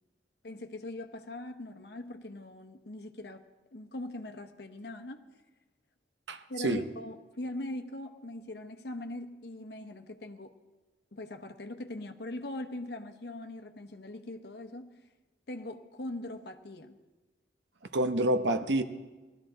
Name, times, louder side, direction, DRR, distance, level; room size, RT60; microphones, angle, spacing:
voice 1, 0.4-3.4 3.7-5.2 6.5-10.6 11.1-14.9 15.5-17.0, left 1 dB, 60° left, 0.9 m, -41 dB
voice 2, 6.3-6.8 17.9-18.8, right 1 dB, 80° right, 0.8 m, -28 dB
18.5 x 12.5 x 3.9 m
head